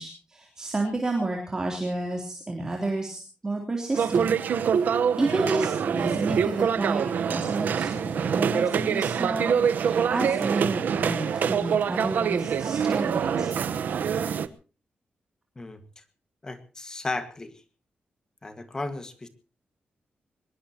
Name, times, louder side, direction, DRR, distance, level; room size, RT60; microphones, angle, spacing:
voice 1, 0.0-4.3 4.8-4.9 5.2-13.7, right 2 dB, 20° right, 1 dB, 3.3 m, -31 dB
sound 1, 3.9-14.5, right 7 dB, 65° right, 1.1 m, -25 dB
voice 2, 15.6-16.0 16.4-17.5 18.4-19.3, left 2 dB, 20° left, 10 dB, 1.7 m, -35 dB
23.0 x 21.0 x 2.9 m, 0.37 s
wide cardioid pair, 180°, 3 cm